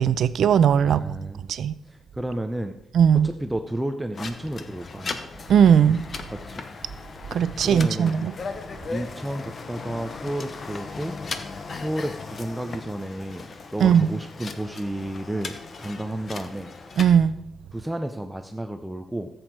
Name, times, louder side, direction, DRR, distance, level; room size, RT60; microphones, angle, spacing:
voice 1, 0.0-1.2 1.5-1.7 2.9-3.3 5.5-6.0 7.3-8.3 13.8-14.1 17.0-17.4, right 8 dB, 65° right, 0.5 m, -18 dB
voice 2, 0.8-1.4 1.9-2.8 3.2-5.2 6.3-6.6 7.6-8.2 8.9-11.2 11.7-16.7 17.7-19.3, right 1 dB, 5° right, 0.6 m, -32 dB
sound 1, 4.1-17.1, left 4 dB, 35° left, 0.9 m, -37 dB
14.5 x 7.9 x 4.7 m
wide cardioid pair, 165°, 0 cm